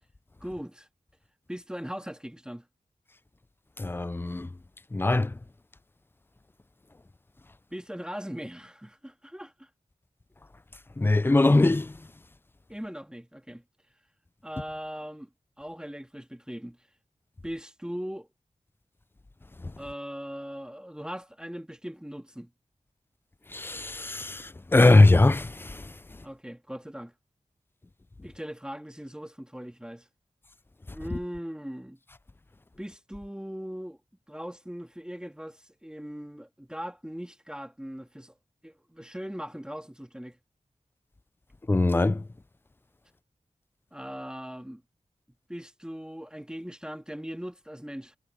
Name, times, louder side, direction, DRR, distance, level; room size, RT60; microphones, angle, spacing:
voice 1, 0.4-0.9 1.5-2.7 7.7-9.7 12.7-13.6 14.4-15.3 15.6-16.9 17.4-18.3 19.8-22.5 26.2-27.1 28.2-30.1 30.9-32.0 32.8-34.0 34.3-38.3 38.6-40.4 43.9-44.8 45.5-48.2, equal, 5° right, 1.9 m, -39 dB
voice 2, 3.8-4.5 4.9-5.3 11.0-11.9 23.5-25.9 41.7-42.2, left 2 dB, 15° left, 0.4 m, -21 dB
wide cardioid pair, 65°, 13 cm